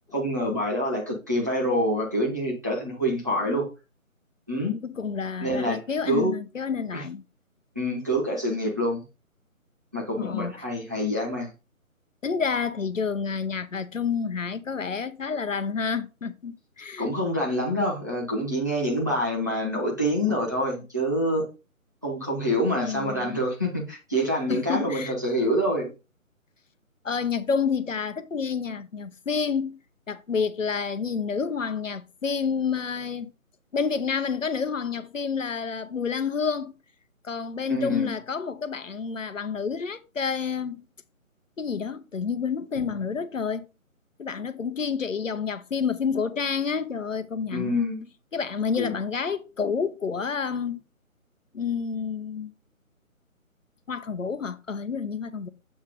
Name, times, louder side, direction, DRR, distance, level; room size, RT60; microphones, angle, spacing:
voice 1, 0.1-3.7 4.5-4.8 5.4-6.3 6.9-7.0 7.7-9.0 9.9-11.5 17.0-21.5 22.0-25.9 37.7-38.1 47.5-48.1 48.8-48.9, equal, 15° right, 0.7 m, -26 dB
voice 2, 4.8-7.2 10.2-10.5 12.2-17.1 22.7-23.4 24.5-25.1 27.0-29.7 30.1-33.3 33.7-36.8 37.2-40.8 41.6-43.7 44.2-47.7 48.3-50.8 51.5-52.5 53.9-55.5, left 6 dB, 65° left, 0.8 m, -29 dB
7.3 x 3.0 x 5.1 m
figure-of-eight pair, 150°, 42 cm